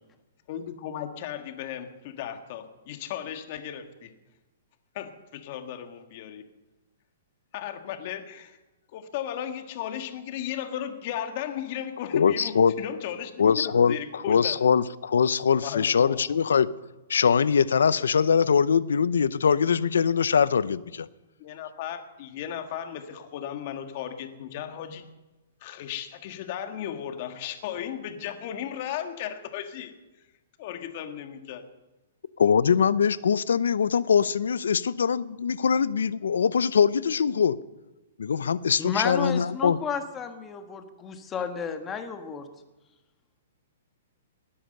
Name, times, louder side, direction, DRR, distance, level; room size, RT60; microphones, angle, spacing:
voice 1, 0.5-4.1 4.9-6.4 7.5-8.6 8.9-14.6 15.6-16.4 21.4-25.1 25.6-29.9 30.6-31.6, left 10 dB, 40° left, 7 dB, 1.7 m, -35 dB
voice 2, 12.1-12.7 13.4-16.7 17.1-21.1 32.4-37.6 38.2-39.8, left 6 dB, 90° left, 18 dB, 0.7 m, -22 dB
voice 3, 38.8-42.5, left 6 dB, 15° left, 7 dB, 1.4 m, -32 dB
19.0 x 10.0 x 6.6 m, 1.1 s
hypercardioid pair, 155°, 0 cm